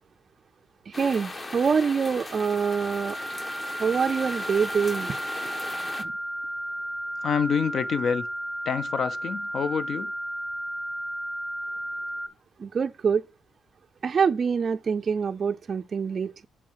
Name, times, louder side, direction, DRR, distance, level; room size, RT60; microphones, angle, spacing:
sound 1, 0.9-6.0, left 2 dB, 30° left, 1.2 m, -38 dB
voice 1, 0.9-3.2 3.8-5.2 6.0-6.1 12.6-13.2 14.0-16.5, right 6 dB, 45° right, 0.4 m, -25 dB
sound 2, 2.3-12.3, right 1 dB, ahead, 1.1 m, -33 dB
voice 2, 7.2-8.3 8.6-10.1, left 6 dB, 60° left, 0.7 m, -27 dB
7.6 x 4.8 x 5.7 m
cardioid pair, 90°, 0 cm